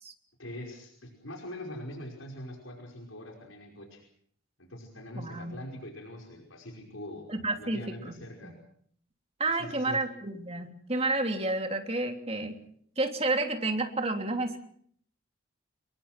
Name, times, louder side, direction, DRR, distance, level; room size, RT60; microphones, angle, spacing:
voice 1, 0.4-4.0 4.6-7.2 7.6-8.6 9.6-10.1, left 1 dB, 80° left, 1 dB, 5.4 m, -43 dB
voice 2, 5.1-5.6 7.3-8.1 8.4-8.6 9.4-12.6 13.0-14.6, right 2 dB, 30° right, 4 dB, 3.1 m, -30 dB
27.5 x 22.5 x 6.0 m, 0.63 s
head